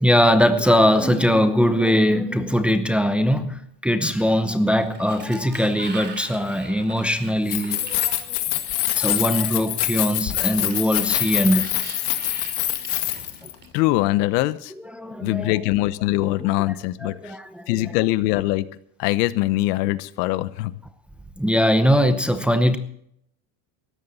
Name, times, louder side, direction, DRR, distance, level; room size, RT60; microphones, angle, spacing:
voice 1, 0.0-8.2 8.9-11.7 14.8-15.5 17.0-17.8 21.4-22.8, equal, ahead, 0.8 m, -21 dB
Sliding door, 4.5-9.1 10.3-14.0, right 4 dB, 20° right, 2.7 m, -42 dB
Keys jangling, 7.4-13.5, left 14 dB, 55° left, 2.1 m, -25 dB
voice 2, 13.7-14.7 15.2-17.3 17.7-18.7 19.0-20.7, left 17 dB, 75° left, 1.0 m, -22 dB
18.0 x 14.0 x 4.1 m
supercardioid pair, 135°, 49 cm